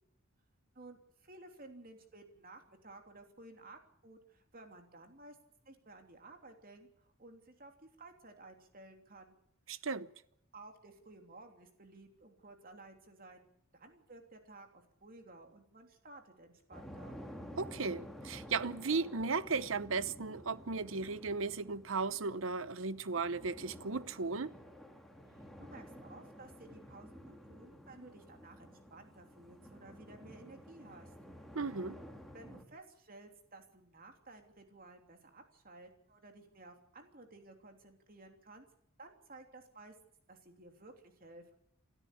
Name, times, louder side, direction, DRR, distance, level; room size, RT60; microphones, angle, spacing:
voice 1, 0.7-5.4 5.6-9.4 10.5-13.4 13.7-17.2 25.3-31.1 32.3-38.7 39.0-39.9 40.3-41.5, right 2 dB, 45° right, 3.2 m, -55 dB
voice 2, 9.7-10.1 17.6-24.5 31.5-32.0, right 4 dB, 70° right, 0.8 m, -36 dB
sound 1, 16.7-32.6, equal, ahead, 2.8 m, -52 dB
28.5 x 13.0 x 8.6 m
head